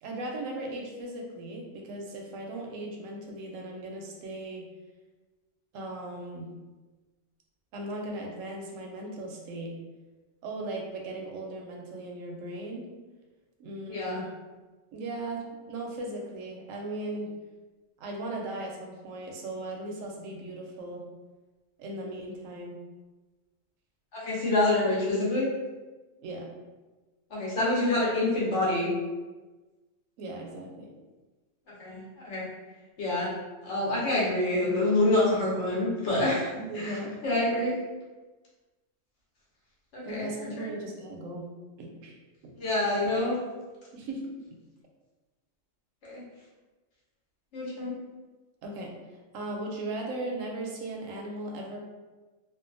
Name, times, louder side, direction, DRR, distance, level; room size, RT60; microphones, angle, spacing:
voice 1, 0.0-4.7 5.7-6.5 7.7-9.7 10.4-12.9 13.6-14.3 14.9-17.3 18.0-21.0 21.8-22.8 26.2-26.5 30.2-30.9 36.6-37.2 40.1-41.5 41.8-42.2 42.4-42.5 43.9-44.3 48.6-48.9 49.3-51.8, right 2 dB, 85° right, 0 dB, 1.0 m, -37 dB
voice 2, 13.9-14.2 24.1-25.5 27.3-28.9 31.8-32.5 33.0-33.3 33.6-36.5 36.7-37.0 37.2-37.7 40.1-40.3 40.6-40.7 42.6-43.4 46.0-46.2 47.5-47.9, left 2 dB, 65° left, -6 dB, 1.1 m, -26 dB
2.6 x 2.3 x 2.5 m, 1.2 s
omnidirectional pair, 1.3 m